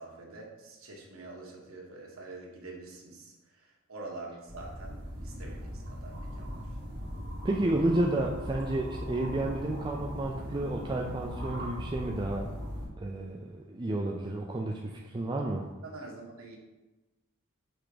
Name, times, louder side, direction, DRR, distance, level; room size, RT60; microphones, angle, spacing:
voice 1, 0.0-6.7 15.8-16.6, right 2 dB, 75° right, -2 dB, 1.4 m, -46 dB
sound 1, 4.5-12.9, equal, 50° right, 1.9 m, -39 dB
voice 2, 7.4-12.5 13.0-15.7, right 2 dB, 20° right, -1 dB, 0.4 m, -31 dB
5.9 x 3.4 x 5.0 m, 1.1 s
head